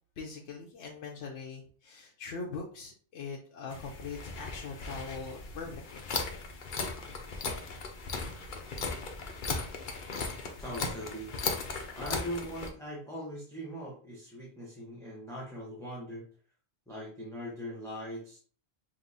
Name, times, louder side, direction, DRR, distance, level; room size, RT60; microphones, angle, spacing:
voice 1, 0.2-6.3, left 4 dB, 85° left, -2 dB, 1.1 m, -42 dB
sound 1, 3.7-12.7, left 4 dB, 50° left, 0.8 m, -37 dB
voice 2, 10.6-11.3 11.9-16.2 16.9-18.4, equal, 5° left, -5 dB, 1.0 m, -40 dB
5.4 x 2.8 x 2.7 m, 0.42 s
omnidirectional pair, 1.2 m